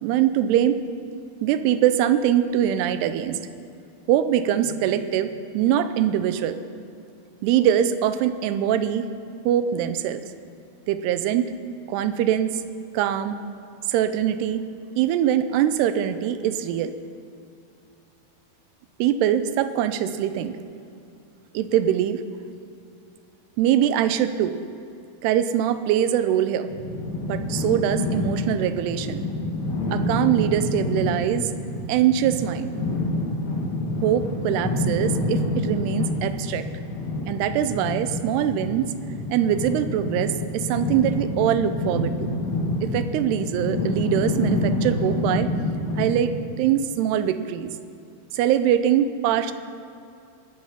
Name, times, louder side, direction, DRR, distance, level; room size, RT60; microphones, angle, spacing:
voice 1, 0.0-0.8 1.4-3.4 4.1-6.6 7.4-9.2 9.5-10.2 10.9-11.5 11.9-12.7 12.9-13.4 13.9-17.0 19.0-20.6 21.5-22.2 23.6-24.5 25.2-26.7 27.2-29.3 29.9-31.5 31.9-32.8 34.0-36.7 37.3-39.0 39.3-42.3 42.8-45.5 46.0-47.7 48.3-49.5, right 10 dB, 85° right, 11 dB, 2.7 m, -23 dB
sound 1, 26.7-46.2, left 1 dB, 50° left, 3.5 m, -27 dB
20.5 x 8.2 x 5.6 m, 2.5 s
omnidirectional pair, 4.6 m